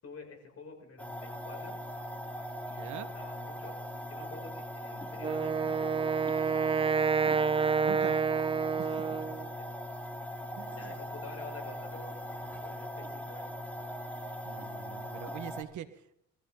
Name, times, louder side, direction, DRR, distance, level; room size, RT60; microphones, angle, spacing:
voice 1, 0.0-1.8 2.6-6.0 8.8-9.7 10.7-13.5 15.0-15.1, left 4 dB, 50° left, 2 dB, 6.8 m, -49 dB
sound 1, 1.0-15.6, equal, 5° left, 3.0 m, -40 dB
voice 2, 2.8-3.1 7.8-8.1 8.8-8.9 10.6-10.9 14.4-16.2, right 10 dB, 75° right, 10 dB, 1.5 m, -43 dB
Wind instrument woodwind instrument, 5.2-9.5, right 6 dB, 20° right, 0.5 m, -28 dB
21.5 x 14.5 x 3.9 m, 0.73 s
cardioid pair, 90°, 30 cm